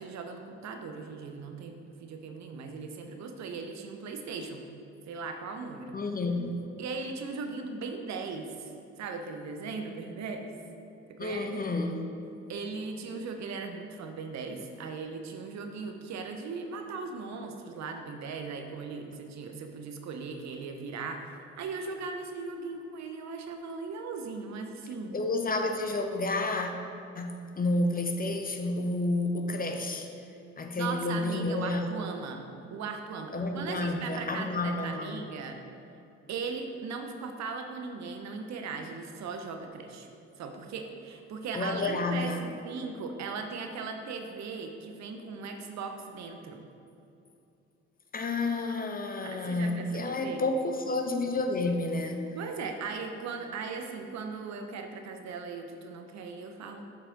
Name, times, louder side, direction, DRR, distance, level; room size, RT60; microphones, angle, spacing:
voice 1, 0.0-4.7 5.1-6.0 6.8-8.7 9.0-10.6 11.1-11.5 12.5-25.2 30.8-32.4 32.7-35.6 36.3-40.1 40.4-46.7 49.2-50.4 52.4-56.8, right 4 dB, 55° right, 5 dB, 0.8 m, -38 dB
voice 2, 5.9-6.6 11.2-12.0 25.1-26.7 27.1-30.1 30.6-31.9 33.3-35.2 41.5-42.5 48.1-52.4, left 2 dB, 25° left, 4 dB, 0.7 m, -30 dB
7.5 x 4.8 x 3.8 m, 2.7 s
hypercardioid pair, 45°, 34 cm